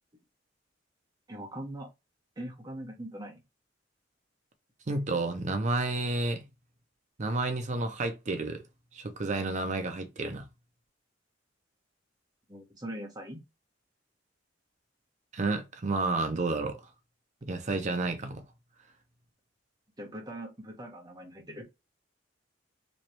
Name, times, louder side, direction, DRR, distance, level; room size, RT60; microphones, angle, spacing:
voice 1, 1.3-1.9 2.4-3.4 12.5-13.4 20.0-21.6, right 1 dB, 20° right, 1.2 m, -41 dB
voice 2, 4.9-6.4 7.2-8.6 8.9-10.4 15.3-16.8 17.4-18.4, right 2 dB, 40° right, 0.6 m, -30 dB
3.1 x 3.1 x 2.9 m
head